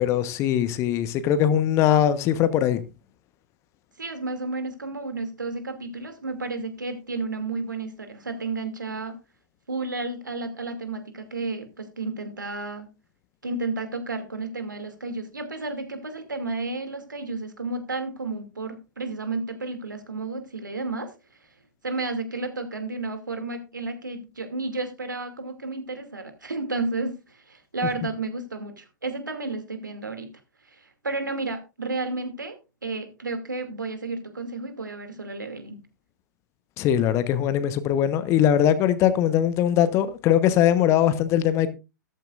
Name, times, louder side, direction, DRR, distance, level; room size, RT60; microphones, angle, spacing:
voice 1, 0.0-2.8 36.8-41.7, left 10 dB, 25° left, 1.1 m, -21 dB
voice 2, 4.0-9.2 9.7-12.9 13.4-21.1 21.8-30.3 30.7-35.8, right 3 dB, 75° right, 2.6 m, -32 dB
13.5 x 13.5 x 2.5 m
figure-of-eight pair, 110°, 10 cm